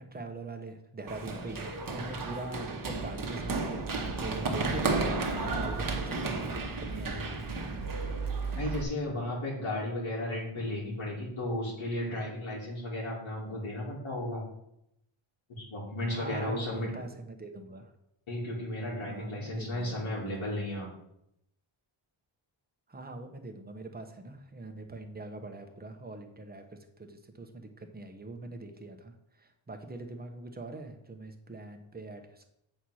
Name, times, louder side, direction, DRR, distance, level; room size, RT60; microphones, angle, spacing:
voice 1, 0.0-7.9 16.1-17.9 19.1-20.0 20.2-20.4 22.9-32.4, right 2 dB, 20° right, 5 dB, 1.0 m, -43 dB
Run, 1.1-8.8, right 3 dB, 40° right, 1.2 m, -33 dB
voice 2, 8.6-14.4 15.5-16.9 18.3-20.9, left 1 dB, 70° left, -6 dB, 2.5 m, -34 dB
7.9 x 4.3 x 6.3 m, 0.79 s
wide cardioid pair, 130°, 49 cm